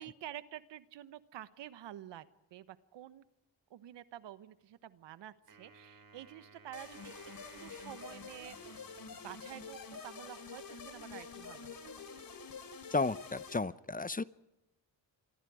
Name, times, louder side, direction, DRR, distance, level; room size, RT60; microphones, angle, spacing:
voice 1, 0.0-3.2 3.7-7.3 7.6-8.8 9.2-12.1, right 12 dB, 85° right, 14 dB, 1.2 m, -49 dB
Wind instrument woodwind instrument, 5.5-9.8, right 4 dB, 55° right, 6.4 m, -58 dB
sound 1, 6.7-13.6, left 5 dB, 55° left, 3.7 m, -48 dB
voice 2, 12.9-14.2, left 3 dB, 20° left, 17 dB, 0.7 m, -33 dB
29.0 x 24.5 x 4.9 m, 0.97 s
cardioid pair, 65°, 42 cm